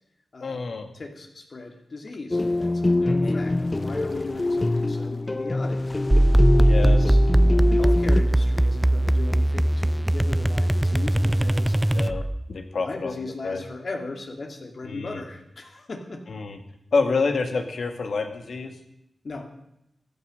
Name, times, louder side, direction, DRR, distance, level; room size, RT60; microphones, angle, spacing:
voice 1, 0.4-0.9 3.0-3.4 6.6-7.0 11.9-12.2 12.5-13.1 13.4-13.6 14.9-15.2 16.3-16.6 16.9-18.7, left 4 dB, 80° left, 6 dB, 2.1 m, -27 dB
voice 2, 0.9-5.8 6.5-11.8 12.8-16.2 19.2-19.5, left 3 dB, 60° left, 3 dB, 2.9 m, -37 dB
sound 1, 2.3-8.2, left 2 dB, 30° left, 0.8 m, -24 dB
sound 2, 6.1-12.5, right 1 dB, 10° right, 0.6 m, -20 dB
15.0 x 12.5 x 6.6 m, 0.82 s
wide cardioid pair, 80°, 0 cm